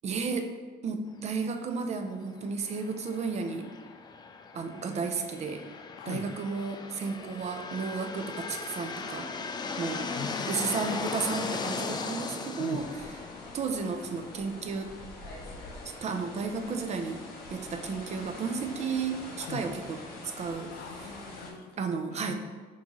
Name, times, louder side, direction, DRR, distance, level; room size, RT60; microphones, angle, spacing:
voice 1, 0.0-0.5 0.8-3.7 4.5-5.6 6.1-9.3 9.8-10.1 10.5-12.8 13.5-14.9 16.0-17.2 17.5-20.0 20.4-20.7 21.8-22.3, right 5 dB, 40° right, 6 dB, 0.5 m, -33 dB
sound 1, 2.6-20.2, left 4 dB, 25° left, 0.3 m, -39 dB
voice 2, 6.0-6.3 10.1-11.1 12.5-12.9 19.4-19.7 20.4-21.8 22.1-22.3, left 6 dB, 90° left, 5 dB, 0.5 m, -42 dB
sound 2, 12.7-21.5, left 2 dB, 60° left, 1.2 m, -45 dB
5.9 x 2.7 x 3.0 m, 1.4 s
cardioid pair, 110°, 17 cm